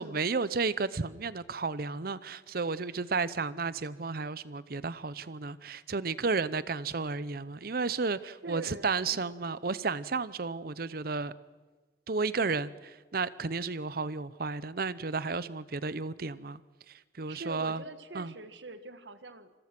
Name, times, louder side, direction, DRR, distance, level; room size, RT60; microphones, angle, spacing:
voice 1, 0.0-11.3 12.1-12.7 13.1-16.6 16.9-17.8 18.1-18.3, right 4 dB, 55° right, 17 dB, 0.7 m, -32 dB
voice 2, 8.4-9.3 17.3-19.5, right 2 dB, 80° right, 10 dB, 1.5 m, -44 dB
26.5 x 21.0 x 6.0 m, 1.3 s
head